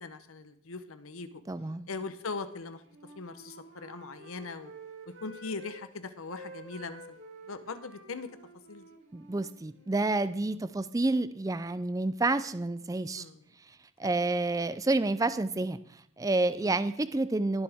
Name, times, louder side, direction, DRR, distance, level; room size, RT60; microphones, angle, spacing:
voice 1, 0.0-1.3 1.9-2.8 3.2-4.7 5.2-7.2 7.5-8.3 8.7-8.9 10.5-10.6 13.1-13.4 16.6-16.8, left 4 dB, 85° left, 11 dB, 0.9 m, -40 dB
voice 2, 1.5-1.9 9.1-13.3 14.0-15.8 16.2-17.6, right 2 dB, 15° right, 13 dB, 0.4 m, -29 dB
Wind instrument woodwind instrument, 2.4-5.8 6.1-10.1, right 2 dB, 65° right, 3.6 m, -50 dB
20.5 x 7.1 x 3.5 m, 0.66 s
head